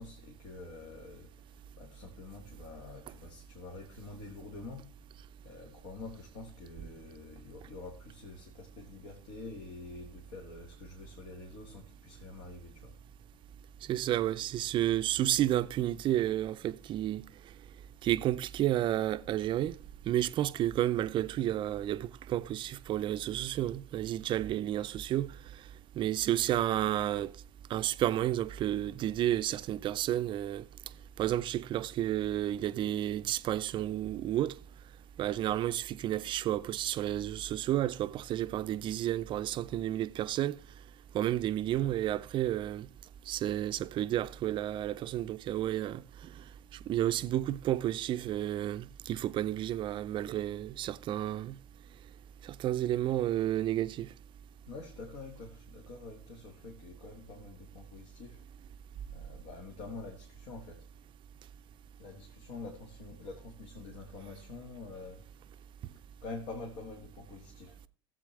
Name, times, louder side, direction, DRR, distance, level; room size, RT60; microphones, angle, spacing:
voice 1, 0.0-4.9 5.4-13.0 54.7-58.4 59.1-60.9 62.0-65.3 66.2-67.8, left 3 dB, 60° left, 1.8 m, -47 dB
voice 2, 13.9-17.2 18.0-19.8 20.1-25.3 26.0-27.3 27.7-30.6 31.2-34.5 35.2-40.5 41.1-42.9 43.3-46.0 46.9-51.6 52.4-54.1, right 12 dB, 40° right, 0.5 m, -31 dB
16.5 x 7.6 x 3.3 m
hypercardioid pair, 80°, 12 cm